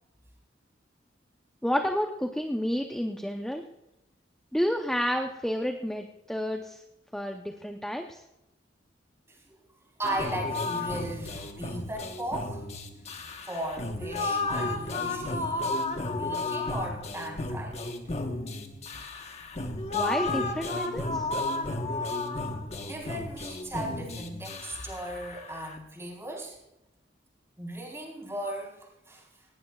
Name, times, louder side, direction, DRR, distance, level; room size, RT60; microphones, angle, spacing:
voice 1, 1.6-3.6 4.5-6.8 7.1-8.2 19.9-21.3, equal, 5° left, 3 dB, 0.7 m, -30 dB
sound 1, 10.0-25.8, left 2 dB, 35° left, 1.2 m, -33 dB
voice 2, 10.0-12.6 13.5-15.7 16.0-17.9 22.8-26.6 27.6-29.3, right 1 dB, 15° right, 0 dB, 4.0 m, -37 dB
18.5 x 18.0 x 2.4 m, 0.90 s
head